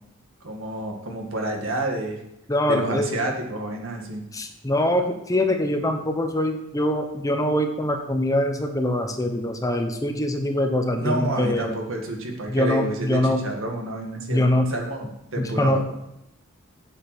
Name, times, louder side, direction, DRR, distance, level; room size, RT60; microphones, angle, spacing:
voice 1, 0.4-2.2 2.7-4.2 11.0-16.0, right 1 dB, 75° right, 2 dB, 2.0 m, -29 dB
voice 2, 2.5-3.1 4.3-11.7 12.5-13.4 14.3-14.7 15.4-15.8, left 1 dB, 15° left, 5 dB, 1.0 m, -23 dB
8.3 x 7.9 x 6.1 m, 0.82 s
head